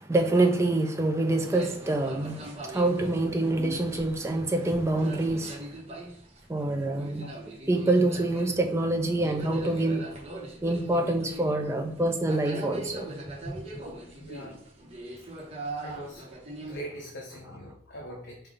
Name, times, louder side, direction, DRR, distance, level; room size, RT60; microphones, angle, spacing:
voice 1, 0.0-5.7 6.5-7.3 7.7-10.1 10.6-13.2, right 2 dB, 15° right, 0.3 m, -26 dB
sound 1, 1.4-16.8, right 2 dB, 30° right, 0.8 m, -41 dB
voice 2, 14.2-14.6 15.2-15.3 15.8-16.2 16.6-18.4, right 1 dB, 60° left, 0.7 m, -42 dB
5.0 x 2.2 x 3.7 m
head